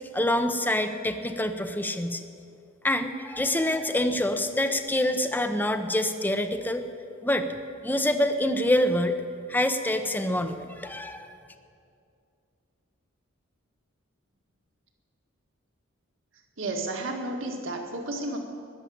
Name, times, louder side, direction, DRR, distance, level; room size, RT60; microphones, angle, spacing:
voice 1, 0.1-2.2 2.8-6.9 7.2-7.5 7.8-9.1 9.5-11.3, left 1 dB, 10° left, 7 dB, 0.8 m, -26 dB
voice 2, 16.6-18.4, right 2 dB, 65° right, 2 dB, 2.0 m, -32 dB
20.5 x 7.5 x 8.7 m, 2.4 s
head